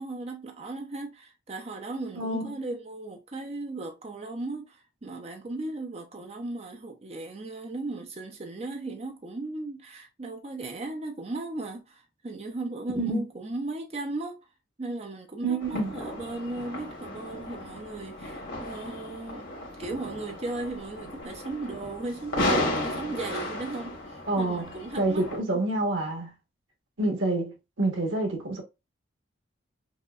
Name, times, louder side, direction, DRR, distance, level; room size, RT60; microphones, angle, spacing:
voice 1, 0.0-14.4 14.8-19.5 19.8-25.3 25.5-25.6, right 2 dB, 35° right, 0.5 m, -36 dB
voice 2, 2.2-2.6 13.0-13.2 15.4-15.9 24.3-24.7 25.0-26.3 27.0-28.6, right 2 dB, 90° right, 1.3 m, -27 dB
sound 1, 15.6-25.4, left 1 dB, 80° left, 1.7 m, -34 dB
5.4 x 2.1 x 2.4 m
head